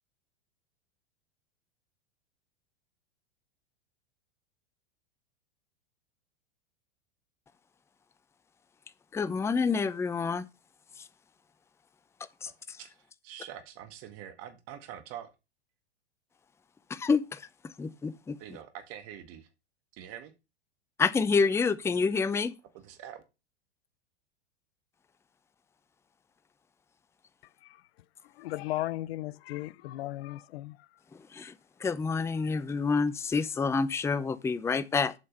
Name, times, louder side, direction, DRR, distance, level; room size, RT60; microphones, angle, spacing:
voice 1, 9.1-10.5 11.0-11.1 12.4-12.8 16.9-18.4 21.0-22.5 31.3-31.5 31.8-35.1, left 5 dB, 10° left, 0.5 m, -28 dB
voice 2, 12.8-15.3 18.4-19.5 19.9-20.3 22.2-22.3 22.7-23.2, right 10 dB, 45° right, 1.6 m, -45 dB
voice 3, 27.4-27.9 28.2-31.0 32.4-32.6, left 16 dB, 70° left, 0.6 m, -37 dB
8.0 x 5.4 x 5.4 m
hypercardioid pair, 100°, 33 cm